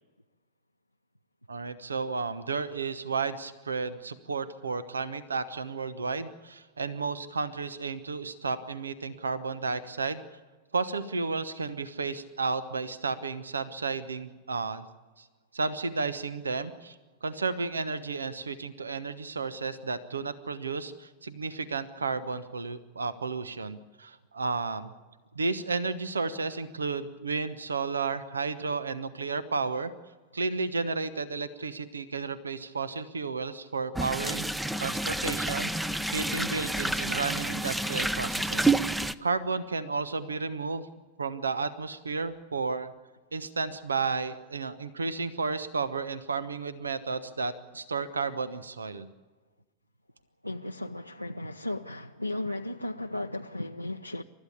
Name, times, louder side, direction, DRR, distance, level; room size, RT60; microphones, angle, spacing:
voice 1, 1.5-10.2 10.7-14.8 15.2-15.3 15.5-24.9 25.3-29.9 30.3-34.4 34.8-40.9 41.2-42.9 43.3-49.1, right 4 dB, 75° right, 15 dB, 1.1 m, -32 dB
sound 1, 33.9-39.1, right 2 dB, 5° right, 0.7 m, -29 dB
voice 2, 50.4-54.2, left 1 dB, 90° left, 3 dB, 0.6 m, -35 dB
29.0 x 14.0 x 8.6 m, 1.3 s
figure-of-eight pair, 90°, 0 cm